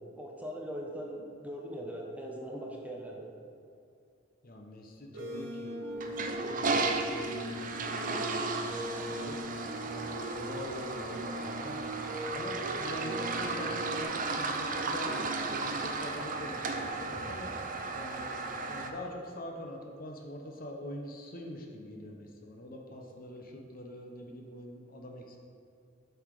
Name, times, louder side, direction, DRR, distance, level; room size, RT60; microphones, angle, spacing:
voice 1, 0.1-3.3, equal, 10° right, -1 dB, 0.8 m, -40 dB
voice 2, 4.4-9.4 9.9-12.0 12.3-17.5 17.9-18.3 18.7-25.4, left 1 dB, 50° left, 1 dB, 0.9 m, -44 dB
sound 1, 5.1-14.0, equal, 75° right, 1.1 m, -40 dB
Toilet flush, 5.9-18.9, right 3 dB, 45° right, 0.6 m, -35 dB
7.6 x 5.6 x 4.8 m, 2.5 s
head